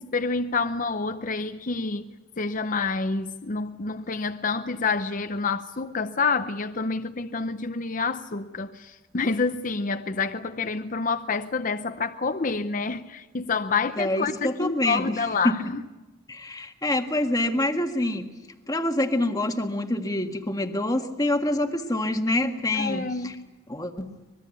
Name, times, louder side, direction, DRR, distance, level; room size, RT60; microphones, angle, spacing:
voice 1, 0.0-2.1 2.4-15.8 22.7-23.4, left 4 dB, 40° left, 0.7 m, -28 dB
voice 2, 14.0-15.7 16.3-18.3 18.7-23.4 23.7-24.1, left 1 dB, 20° left, 1.6 m, -26 dB
25.0 x 21.5 x 8.3 m
head